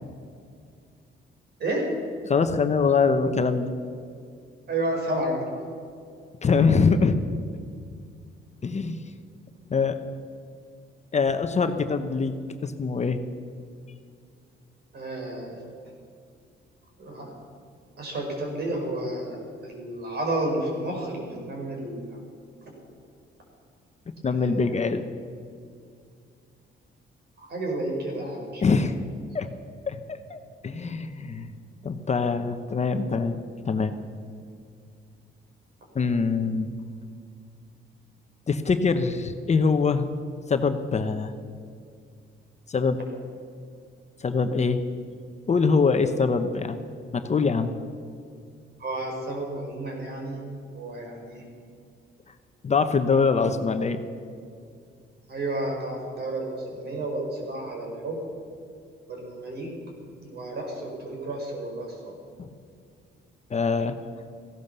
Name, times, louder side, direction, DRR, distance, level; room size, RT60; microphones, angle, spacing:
voice 1, 2.3-3.7 6.4-7.2 8.6-9.1 9.7-10.0 11.1-12.4 12.6-13.2 24.2-25.0 28.6-28.9 29.3-29.5 29.9-30.4 30.6-31.5 31.8-34.0 35.9-36.7 38.5-40.1 40.5-41.3 42.7-43.0 44.2-44.8 45.5-46.8 47.1-47.7 52.6-54.0 62.4-62.5 63.5-64.0, left 4 dB, 35° left, 8 dB, 0.9 m, -23 dB
voice 2, 4.7-5.6 14.9-15.5 17.0-17.3 18.0-19.4 19.6-22.2 24.3-24.5 27.4-28.8 48.8-50.4 50.7-51.4 55.3-58.2 59.1-59.7 60.2-62.1, right 1 dB, 55° right, 1 dB, 5.1 m, -31 dB
15.5 x 11.5 x 6.8 m, 2.3 s
cardioid pair, 90°, 20 cm